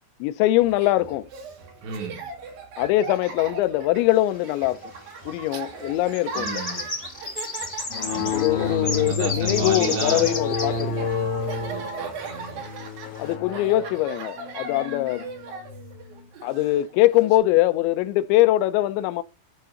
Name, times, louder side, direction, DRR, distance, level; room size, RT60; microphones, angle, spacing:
voice 1, 0.2-1.3 2.8-4.8 5.3-6.6 8.3-11.1 13.2-15.6 16.4-19.2, left 16 dB, 85° left, 2.8 m, -22 dB
Laughter, 0.6-17.4, right 4 dB, 60° right, 3.6 m, -38 dB
voice 2, 1.8-2.2 5.5-5.6 6.4-6.9 8.1-10.4 11.7-12.6, right 6 dB, 75° right, 4.2 m, -34 dB
sound 1, 4.4-4.5 5.3-5.6 5.9-10.8 11.1-11.2 11.6-11.7 12.5-12.6 13.1-13.3, left 3 dB, 30° left, 2.0 m, -32 dB
sound 2, 7.9-16.0, left 5 dB, 60° left, 4.0 m, -30 dB
10.5 x 3.6 x 6.9 m
omnidirectional pair, 5.2 m